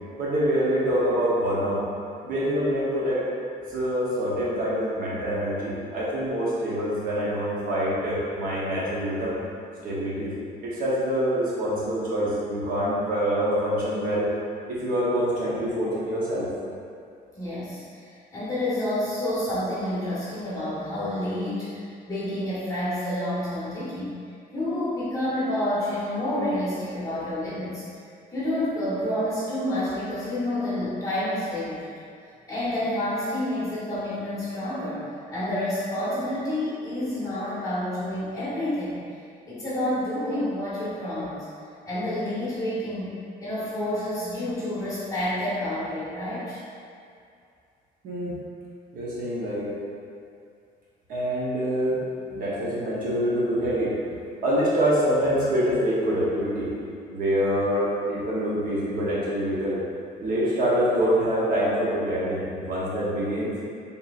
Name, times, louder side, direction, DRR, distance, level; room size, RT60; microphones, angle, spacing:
voice 1, 0.2-1.8 2.2-3.2 3.7-9.4 9.8-10.4 10.6-14.3 14.7-16.5 48.0-48.3 48.9-49.7 51.1-52.0 52.3-56.7 57.1-59.8 60.2-63.5, equal, 60° right, -7 dB, 0.9 m, -25 dB
voice 2, 17.3-24.2 24.5-27.8 28.3-31.8 32.5-39.0 39.5-41.5 41.9-43.1 43.4-46.6, left 1 dB, 20° left, -11 dB, 1.1 m, -29 dB
4.1 x 3.5 x 2.4 m, 2.3 s
cardioid pair, 165°, 16 cm